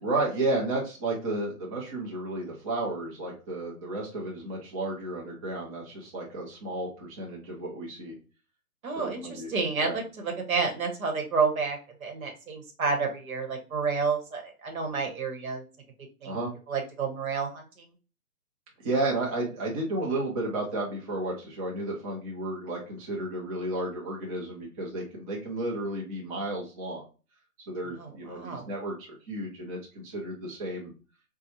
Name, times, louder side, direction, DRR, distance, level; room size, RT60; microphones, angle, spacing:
voice 1, 0.0-8.2 9.0-9.5 9.8-10.0 16.2-16.5 18.8-27.0 27.7-30.9, right 2 dB, 25° right, -3 dB, 0.7 m, -32 dB
voice 2, 8.8-15.6 16.2-16.4 16.7-17.7 27.9-28.7, right 4 dB, 60° right, 2 dB, 1.1 m, -30 dB
4.1 x 2.3 x 2.8 m, 0.34 s
figure-of-eight pair, 135°, 46 cm